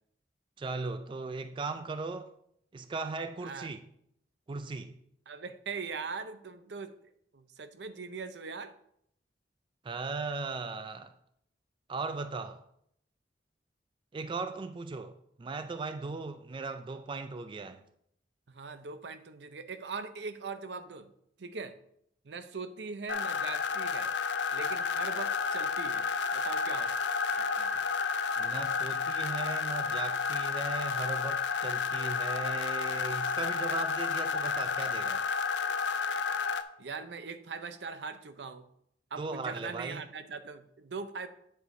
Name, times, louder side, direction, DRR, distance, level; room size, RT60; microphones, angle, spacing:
voice 1, 0.6-2.3 2.7-3.8 4.5-4.9 9.8-11.1 11.9-12.6 14.1-17.8 28.4-35.2 39.2-40.1, right 3 dB, 30° right, 0.3 m, -37 dB
voice 2, 5.3-8.8 18.5-21.1 21.4-21.8 22.2-24.1 24.5-26.9 27.3-27.7 36.8-38.7 39.1-41.3, right 4 dB, 75° right, 0.6 m, -41 dB
sound 1, 23.1-36.6, left 5 dB, 80° left, 0.5 m, -31 dB
8.3 x 7.5 x 2.6 m
head